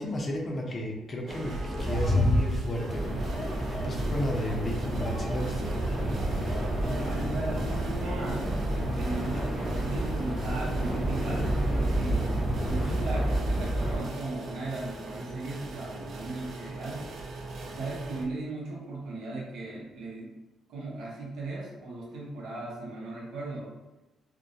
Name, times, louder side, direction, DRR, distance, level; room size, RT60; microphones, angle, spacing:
voice 1, 0.0-3.0 3.5-5.7, left 1 dB, 40° left, 0 dB, 0.5 m, -33 dB
sound 1, 1.3-18.2, equal, 60° right, 0.4 m, -36 dB
sound 2, 1.7-7.7, right 1 dB, 10° right, 0.6 m, -37 dB
sound 3, 2.9-14.0, right 1 dB, 35° right, 1.0 m, -30 dB
voice 2, 7.0-8.5 8.8-9.5 9.8-12.4 12.7-17.0 17.7-20.3 20.7-23.7, right 2 dB, 85° right, -5 dB, 0.8 m, -37 dB
2.2 x 2.1 x 2.6 m, 1.1 s
cardioid pair, 90°, 0 cm